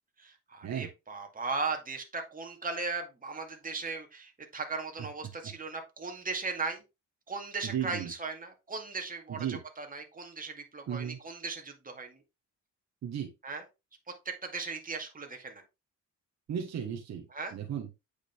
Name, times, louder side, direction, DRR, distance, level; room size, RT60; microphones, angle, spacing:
voice 1, 0.2-6.8 7.3-12.2 13.4-13.6 14.3-15.6 17.3-17.5, right 4 dB, 30° right, 4 dB, 2.2 m, -37 dB
voice 2, 7.6-8.1 9.3-9.6 10.9-11.2 13.0-13.3 16.5-17.3 17.5-17.9, right 9 dB, 60° right, 2 dB, 1.4 m, -35 dB
8.5 x 5.2 x 3.4 m, 0.25 s
cardioid pair, 90°, 30 cm